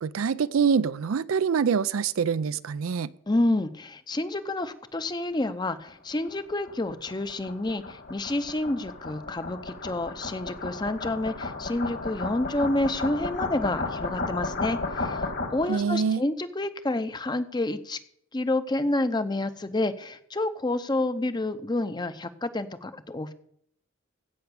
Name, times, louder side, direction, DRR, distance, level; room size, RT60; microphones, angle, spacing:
voice 1, 0.0-3.1 15.7-16.2, right 6 dB, 70° right, 0.4 m, -25 dB
voice 2, 3.3-18.0 18.3-23.3, left 2 dB, 20° left, 0.6 m, -29 dB
sound 1, 5.9-15.8, left 3 dB, 50° left, 1.6 m, -34 dB
16.0 x 5.9 x 6.9 m
head